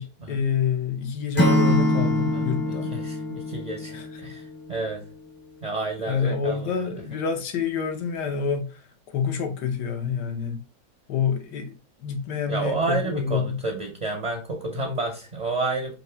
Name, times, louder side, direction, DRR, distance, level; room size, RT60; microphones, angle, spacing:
voice 1, 0.0-2.9 3.9-4.1 6.1-10.6 11.1-13.6, left 6 dB, 85° left, 1.5 m, -27 dB
Acoustic guitar / Strum, 1.4-4.4, left 1 dB, 25° left, 0.5 m, -24 dB
voice 2, 2.3-5.0 5.6-6.9 12.5-15.9, right 3 dB, 45° right, 0.5 m, -30 dB
5.3 x 2.7 x 3.3 m
omnidirectional pair, 1.8 m